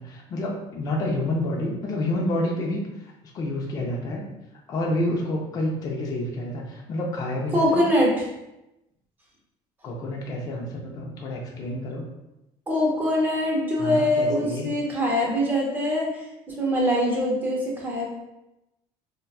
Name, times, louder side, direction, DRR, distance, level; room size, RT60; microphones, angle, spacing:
voice 1, 0.0-2.9 3.3-4.2 4.7-7.9 9.8-12.0 13.8-14.7, left 1 dB, 30° left, -1 dB, 0.4 m, -28 dB
voice 2, 7.5-8.3 12.7-18.1, left 1 dB, 15° right, -3 dB, 0.6 m, -23 dB
3.9 x 2.2 x 2.3 m, 0.93 s
cardioid pair, 170°, 13 cm